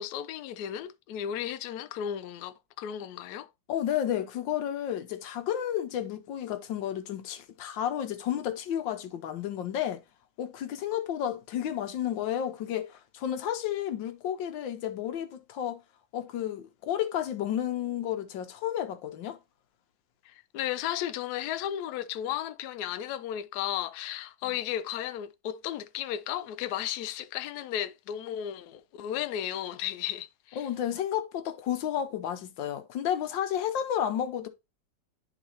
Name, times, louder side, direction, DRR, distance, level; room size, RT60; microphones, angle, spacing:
voice 1, 0.0-3.5 20.2-30.7, left 11 dB, 70° left, 1.0 m, -34 dB
voice 2, 3.7-10.0 10.4-15.8 16.1-19.4 30.6-34.5, left 10 dB, 90° left, 1.5 m, -32 dB
11.0 x 4.0 x 2.9 m
omnidirectional pair, 2.0 m